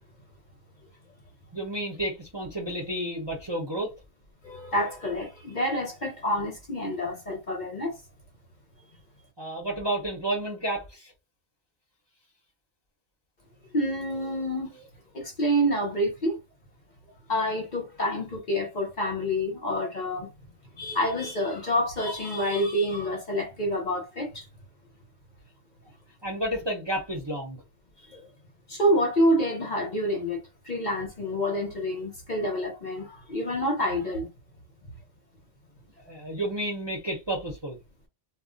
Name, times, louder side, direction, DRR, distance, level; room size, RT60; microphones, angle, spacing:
voice 1, 1.5-3.9 9.4-11.1 26.2-27.6 36.1-37.8, right 1 dB, 30° right, 0.6 m, -31 dB
voice 2, 4.4-8.0 13.7-14.7 15.1-16.4 17.3-20.3 20.8-24.5 28.1-28.3 28.7-34.3, equal, 45° left, 0.8 m, -27 dB
2.3 x 2.0 x 3.7 m
omnidirectional pair, 1.3 m